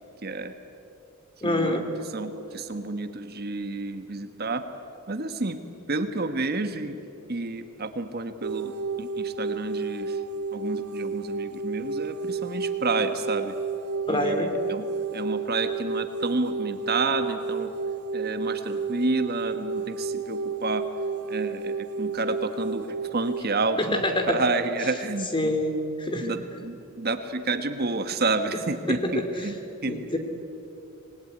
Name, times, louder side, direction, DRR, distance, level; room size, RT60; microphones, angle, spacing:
voice 1, 0.2-0.5 1.4-1.8 2.1-4.6 5.1-5.6 5.9-7.0 7.3-10.2 10.5-13.6 14.1-17.7 18.1-20.8 21.3-25.5 26.2-30.0, right 3 dB, 45° right, 8 dB, 1.3 m, -30 dB
voice 2, 1.4-1.9 14.1-14.5 23.8-24.4 25.3-26.3 28.9-29.5 29.9-30.2, left 1 dB, 25° left, 5 dB, 2.6 m, -26 dB
sound 1, 8.4-23.4, right 4 dB, 85° right, 0.7 m, -31 dB
26.0 x 20.0 x 9.7 m, 2.8 s
head